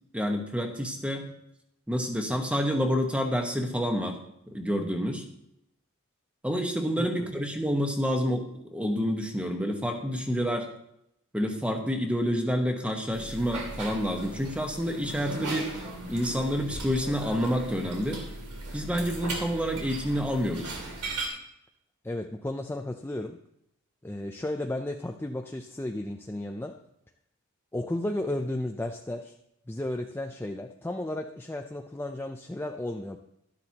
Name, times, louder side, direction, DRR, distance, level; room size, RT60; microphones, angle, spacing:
voice 1, 0.1-1.3 1.9-4.2 4.5-5.2 6.4-8.5 8.7-10.7 11.3-15.7 16.1-18.2 18.7-20.8, equal, 5° right, 3 dB, 1.2 m, -28 dB
voice 2, 7.0-7.3 22.0-23.4 24.0-26.8 27.7-29.4 29.7-33.2, left 1 dB, 10° left, 3 dB, 0.4 m, -33 dB
sound 1, 13.1-21.3, right 2 dB, 85° right, 2.7 m, -38 dB
12.0 x 12.0 x 2.9 m, 0.78 s
head